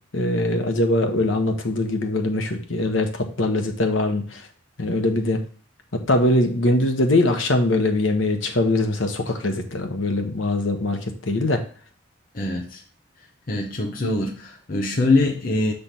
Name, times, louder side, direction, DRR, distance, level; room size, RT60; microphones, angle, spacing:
voice 1, 0.1-4.4 4.8-5.4 6.1-11.6, left 2 dB, 80° left, 1.2 m, -22 dB
voice 2, 12.3-12.8 13.5-15.7, left 2 dB, 45° left, 0.9 m, -23 dB
6.8 x 3.4 x 5.9 m
head